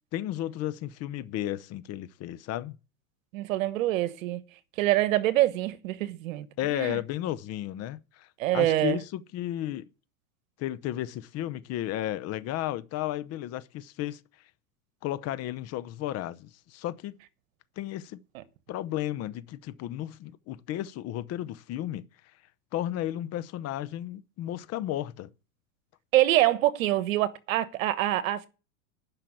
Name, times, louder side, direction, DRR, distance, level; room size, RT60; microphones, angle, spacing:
voice 1, 0.1-2.8 6.6-9.9 10.6-14.2 15.0-17.2 17.8-18.2 18.7-22.1 22.7-25.3, left 13 dB, 35° left, 0.8 m, -33 dB
voice 2, 3.3-4.4 4.8-7.0 8.4-9.0 26.1-28.5, right 15 dB, 65° right, 1.3 m, -25 dB
11.5 x 5.9 x 8.5 m
hypercardioid pair, 105°, 42 cm